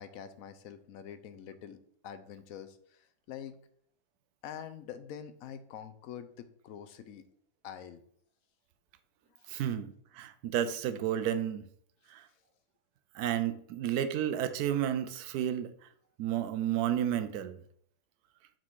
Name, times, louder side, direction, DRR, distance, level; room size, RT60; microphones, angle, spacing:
voice 1, 0.0-3.6 4.4-7.2 7.6-8.0 9.3-9.5, left 9 dB, 65° left, 1.0 m, -45 dB
voice 2, 9.5-11.6 12.1-12.2 13.1-15.7 16.2-17.6, right 10 dB, 75° right, 1.1 m, -31 dB
6.0 x 4.3 x 4.6 m
omnidirectional pair, 1.7 m